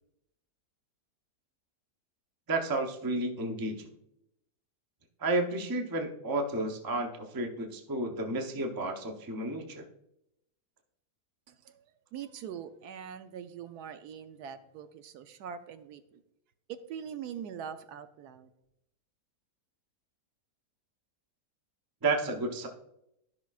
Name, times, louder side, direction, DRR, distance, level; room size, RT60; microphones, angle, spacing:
voice 1, 2.5-3.8 5.2-9.9 22.0-22.7, right 2 dB, 25° right, 4 dB, 0.4 m, -31 dB
voice 2, 11.5-11.8 12.1-16.2 16.7-18.5, right 8 dB, 80° right, 10 dB, 1.1 m, -43 dB
12.5 x 5.8 x 2.4 m, 0.81 s
omnidirectional pair, 1.7 m